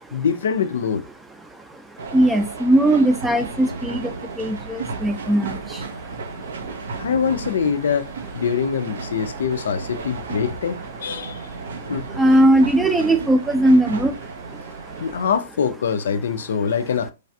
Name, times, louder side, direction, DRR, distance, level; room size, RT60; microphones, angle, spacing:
voice 1, 0.1-1.0 7.0-11.4 11.9-12.1 15.0-17.1, left 6 dB, 75° left, 0.4 m, -24 dB
sound 1, 2.0-15.4, right 4 dB, 75° right, 0.5 m, -34 dB
voice 2, 2.1-4.0 4.4-5.6 12.2-14.1, right 1 dB, 10° right, 0.4 m, -18 dB
3.2 x 2.3 x 2.6 m
hypercardioid pair, 125°, 0 cm